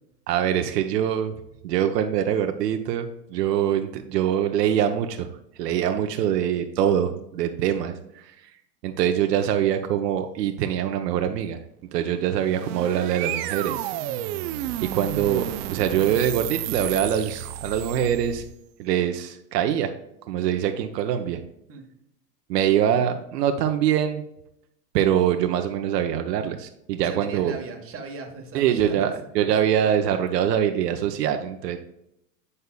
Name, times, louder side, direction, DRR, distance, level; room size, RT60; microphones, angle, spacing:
voice 1, 0.3-1.3 1.6-5.3 5.6-8.2 8.8-11.6 11.9-13.9 14.5-18.4 18.8-19.9 20.3-21.4 22.5-24.2 24.9-27.5 28.5-31.8, right 9 dB, 75° right, 6 dB, 0.8 m, -24 dB
sound 1, 12.2-18.5, right 12 dB, 45° right, 0.5 m, -32 dB
voice 2, 27.0-29.1, right 4 dB, 25° right, 2 dB, 1.4 m, -37 dB
9.6 x 5.4 x 2.3 m, 0.79 s
hypercardioid pair, 120°, 49 cm